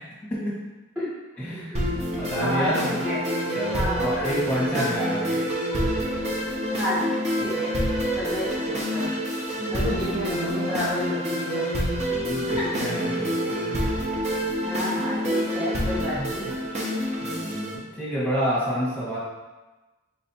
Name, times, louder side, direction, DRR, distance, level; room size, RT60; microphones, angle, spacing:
voice 1, 1.4-1.9 2.2-3.1 3.5-5.5 9.6-9.9 12.1-13.8 16.1-16.3 17.2-19.2, equal, 5° left, -9 dB, 1.4 m, -29 dB
sound 1, 1.7-17.7, equal, 35° right, 0.7 m, -27 dB
voice 2, 2.4-3.2 3.7-4.3 4.7-4.9 6.7-7.0 7.4-7.7 8.1-9.1 9.7-11.7 12.4-12.6 14.5-16.5, equal, 10° right, -11 dB, 1.0 m, -30 dB
4.5 x 3.2 x 2.8 m, 1.1 s
head